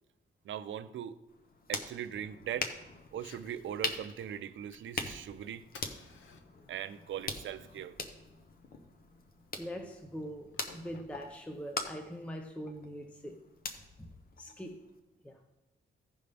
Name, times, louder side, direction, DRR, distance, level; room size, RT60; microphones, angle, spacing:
voice 1, 0.4-1.2 1.7-2.7 3.1-5.6 6.7-8.0, right 9 dB, 75° right, 0.5 m, -40 dB
sound 1, 1.3-15.0, left 3 dB, 45° left, 0.9 m, -43 dB
Fire, 3.1-12.1, left 5 dB, 75° left, 0.9 m, -60 dB
voice 2, 9.6-13.5 14.0-14.9 15.2-15.5, equal, 5° left, 0.5 m, -43 dB
15.5 x 5.4 x 3.4 m
wide cardioid pair, 175°, 20 cm